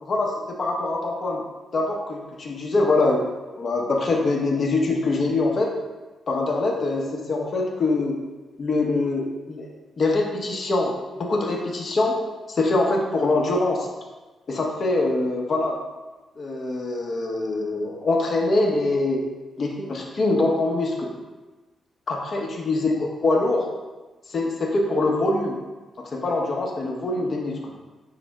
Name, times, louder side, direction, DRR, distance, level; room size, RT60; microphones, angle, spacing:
voice 1, 0.1-1.4 1.7-3.2 3.6-5.7 6.3-8.2 8.6-9.7 10.0-10.9 11.2-12.2 12.5-13.9 14.5-15.8 16.4-19.2 19.6-21.1 22.1-23.6 24.3-25.6 26.0-27.7, left 2 dB, 50° left, 0 dB, 0.8 m, -23 dB
4.8 x 2.1 x 4.6 m, 1.2 s
cardioid pair, 75°, 0 cm